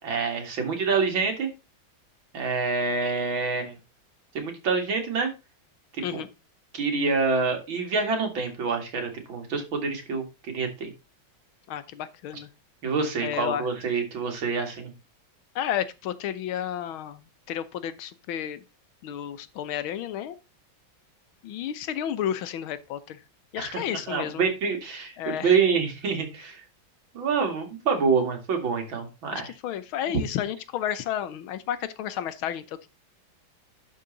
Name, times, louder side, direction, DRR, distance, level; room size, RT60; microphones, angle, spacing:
voice 1, 0.0-1.5 2.3-3.8 4.3-5.3 6.1-6.2 6.7-10.9 12.8-14.9 23.6-26.6 27.1-29.5, right 4 dB, 75° right, 3.0 m, -27 dB
voice 2, 11.7-12.5 13.2-13.7 15.5-18.6 19.0-20.4 21.4-23.2 23.5-24.4 25.2-25.6 29.3-32.9, left 10 dB, 85° left, 1.7 m, -32 dB
11.5 x 4.8 x 3.9 m
omnidirectional pair, 2.2 m